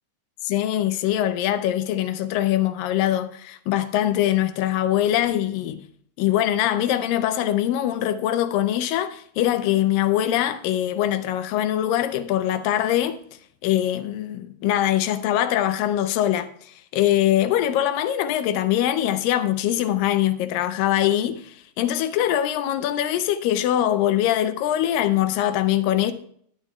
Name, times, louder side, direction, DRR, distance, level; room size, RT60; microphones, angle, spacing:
voice 1, 0.4-5.8 6.2-13.2 13.6-26.1, left 12 dB, 90° left, 2.4 m, -23 dB
15.0 x 10.5 x 2.3 m
omnidirectional pair, 3.9 m